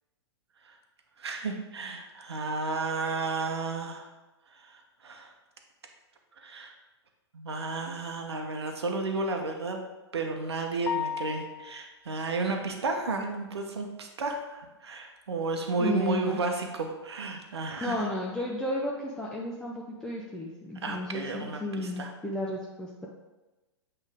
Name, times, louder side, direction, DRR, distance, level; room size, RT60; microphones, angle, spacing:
voice 1, 1.2-4.0 4.5-5.3 6.4-6.7 7.3-9.8 10.1-18.1 20.8-22.1, right 3 dB, 70° right, 3 dB, 0.8 m, -32 dB
sound 1, 10.9-11.9, left 7 dB, 70° left, 0.4 m, -34 dB
voice 2, 15.8-16.4 17.8-23.1, left 1 dB, 5° left, -4 dB, 0.5 m, -33 dB
8.1 x 3.3 x 3.5 m, 1.1 s
figure-of-eight pair, 105°, 14 cm